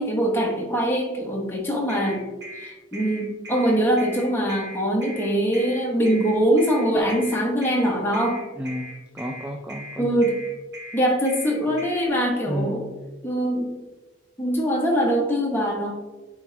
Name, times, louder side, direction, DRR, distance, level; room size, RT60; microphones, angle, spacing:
voice 1, 0.0-2.2 2.6-8.4 10.0-10.4 10.9-12.8 13.2-13.8 14.4-15.9, equal, 10° left, -1 dB, 1.1 m, -23 dB
sound 1, 1.9-12.1, equal, 55° right, 2.1 m, -39 dB
voice 2, 8.6-10.2 12.5-12.8, right 1 dB, 5° right, 1 dB, 0.4 m, -32 dB
9.5 x 3.8 x 3.3 m, 1.2 s
head